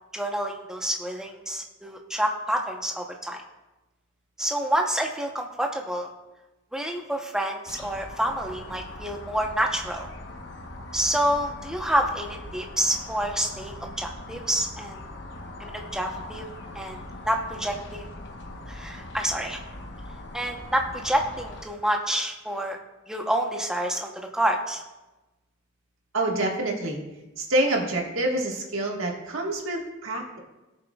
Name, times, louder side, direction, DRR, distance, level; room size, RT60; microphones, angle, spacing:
voice 1, 0.1-3.4 4.4-6.1 6.7-10.1 10.9-15.0 15.6-16.5 16.7-18.1 18.7-19.6 20.3-22.8 23.1-24.8, right 1 dB, 5° right, 1 dB, 0.9 m, -28 dB
sound 1, 7.7-21.6, left 1 dB, 55° left, 1.1 m, -41 dB
voice 2, 26.1-27.0 27.4-30.4, right 1 dB, 80° right, 0 dB, 1.6 m, -27 dB
17.5 x 6.9 x 2.4 m, 1.1 s
head